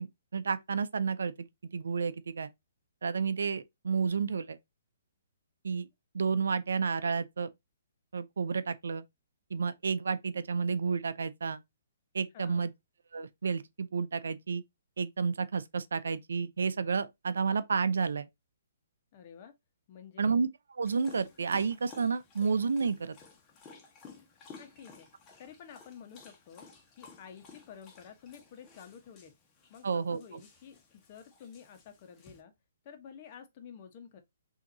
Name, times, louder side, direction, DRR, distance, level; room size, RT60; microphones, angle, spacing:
voice 1, 0.0-2.5 3.0-4.6 5.6-5.9 6.1-7.5 8.1-9.0 9.5-11.6 12.1-12.7 13.1-14.6 15.0-18.3 20.2-20.5 20.8-23.2 29.8-30.4, right 5 dB, 80° right, 0.5 m, -31 dB
voice 2, 12.3-12.8 19.1-19.6 19.9-20.3 24.6-25.1 25.4-26.7 27.0-29.3 29.7-32.5 32.8-34.2, left 7 dB, 40° left, 1.1 m, -51 dB
Dog, 20.9-32.4, left 5 dB, 20° left, 1.2 m, -55 dB
5.7 x 2.8 x 2.7 m
hypercardioid pair, 145°, 0 cm